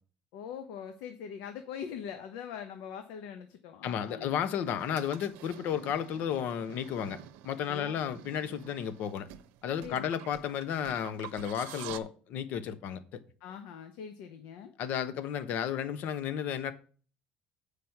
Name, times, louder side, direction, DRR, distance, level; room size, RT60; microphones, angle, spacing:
voice 1, 0.3-4.3 7.7-8.1 9.8-10.1 13.4-14.7, left 8 dB, 85° left, 0.9 m, -42 dB
voice 2, 3.8-9.3 9.6-13.2 14.8-16.7, left 9 dB, 55° left, 0.9 m, -33 dB
Steaming Milk, 4.7-12.0, right 13 dB, 80° right, 0.7 m, -49 dB
8.0 x 5.0 x 5.8 m
cardioid pair, 155°, 4 cm